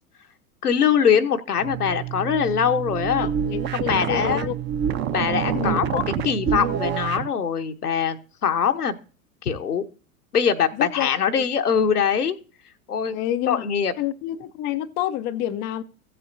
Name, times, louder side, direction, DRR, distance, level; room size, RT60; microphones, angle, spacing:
voice 1, 0.6-3.3 3.7-4.5 5.1-6.0 6.2-9.0 9.4-9.8 10.3-12.4 12.9-13.2 13.5-13.9, left 7 dB, 85° left, 1.0 m, -22 dB
sound 1, 1.6-7.3, right 9 dB, 25° right, 0.6 m, -27 dB
voice 2, 3.2-4.6 5.5-6.9 10.8-11.5 13.1-13.6 14.0-15.8, left 12 dB, 25° left, 0.4 m, -29 dB
15.0 x 7.7 x 2.6 m
figure-of-eight pair, 95°, 45 cm